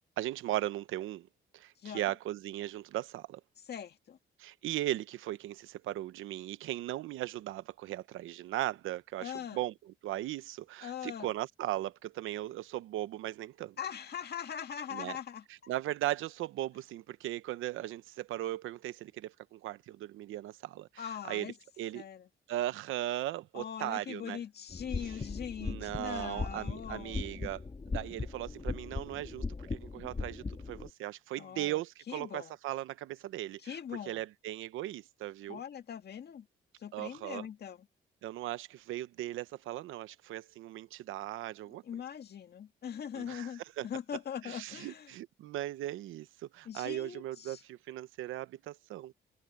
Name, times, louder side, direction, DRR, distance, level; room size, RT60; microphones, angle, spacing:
voice 1, 0.2-1.3 1.5-3.4 4.4-9.7 10.0-13.8 14.9-15.1 15.7-21.0 21.3-21.5 21.8-22.0 22.5-24.4 25.6-33.6 34.1-35.6 36.9-37.4 38.2-41.8 43.2-43.5 43.8-43.9 44.4-49.1, right 14 dB, 85° right, 0.9 m, -38 dB
voice 2, 1.8-2.1 3.6-4.2 9.2-9.6 10.8-11.3 13.8-15.7 21.0-21.6 21.9-22.3 23.5-27.2 31.4-32.6 33.6-34.3 35.5-36.5 36.8-37.9 41.7-45.2 46.6-47.6, left 8 dB, 55° left, 2.0 m, -42 dB
sound 1, 24.7-30.9, left 4 dB, 25° left, 2.6 m, -39 dB
cardioid pair, 90°, 20 cm